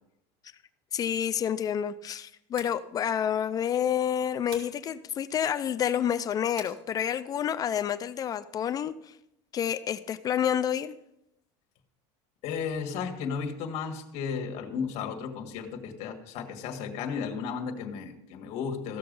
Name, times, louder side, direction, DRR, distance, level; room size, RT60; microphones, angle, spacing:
voice 1, 0.9-8.9 9.5-10.9, left 9 dB, 25° left, 12 dB, 0.3 m, -29 dB
sound 1, 2.5-2.8 4.5-4.8 6.6-6.8, right 4 dB, 40° right, 2.3 m, -45 dB
voice 2, 12.4-19.0, left 6 dB, 50° left, 3 dB, 1.8 m, -34 dB
15.0 x 6.8 x 5.3 m, 0.84 s
cardioid pair, 150°, 14 cm